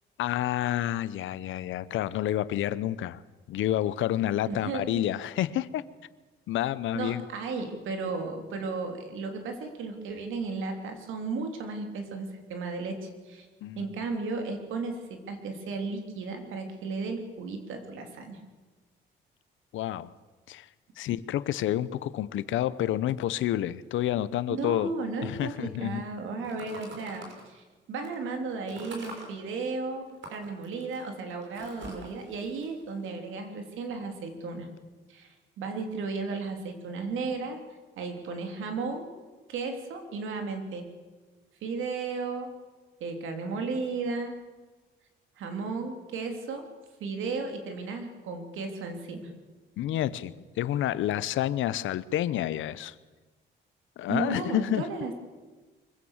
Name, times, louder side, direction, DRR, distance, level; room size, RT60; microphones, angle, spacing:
voice 1, 0.2-3.2 3.5-5.8 6.5-7.2 13.6-13.9 19.7-20.1 20.5-20.7 21.0-24.9 25.2-26.0 49.8-52.9 54.0-54.8, left 12 dB, 80° left, 17 dB, 0.8 m, -29 dB
voice 2, 4.5-5.0 6.9-13.5 13.8-18.4 24.5-34.7 35.1-37.6 38.0-39.1 39.5-40.9 41.6-42.5 43.0-44.3 45.4-46.7 47.0-49.3 54.1-55.1, right 4 dB, 85° right, 5 dB, 3.3 m, -34 dB
sound 1, 26.4-27.4 28.0-28.1 28.7-29.3 30.1-33.6, right 2 dB, 65° right, 6.0 m, -45 dB
24.0 x 16.0 x 7.4 m, 1.3 s
cardioid pair, 90°, 20 cm